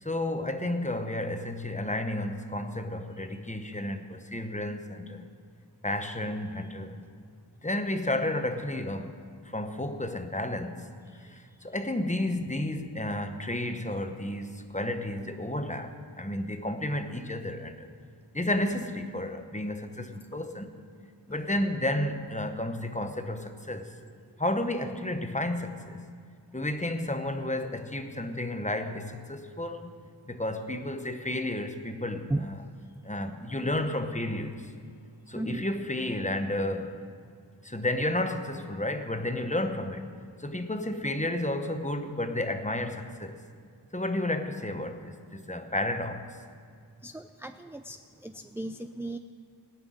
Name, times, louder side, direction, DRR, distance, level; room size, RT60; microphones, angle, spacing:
voice 1, 0.0-5.3 5.8-7.1 7.6-9.2 9.4-10.9 11.3-15.9 16.2-17.9 18.3-20.8 21.3-23.9 24.4-26.0 26.5-29.9 30.2-32.5 33.0-34.7 35.3-37.1 37.6-40.1 40.4-43.4 43.9-46.4, left 1 dB, 15° left, 7 dB, 1.0 m, -32 dB
voice 2, 47.0-48.0 48.2-49.2, right 2 dB, 5° right, 8 dB, 0.3 m, -35 dB
16.5 x 5.9 x 9.4 m, 2.1 s
wide cardioid pair, 50°, 47 cm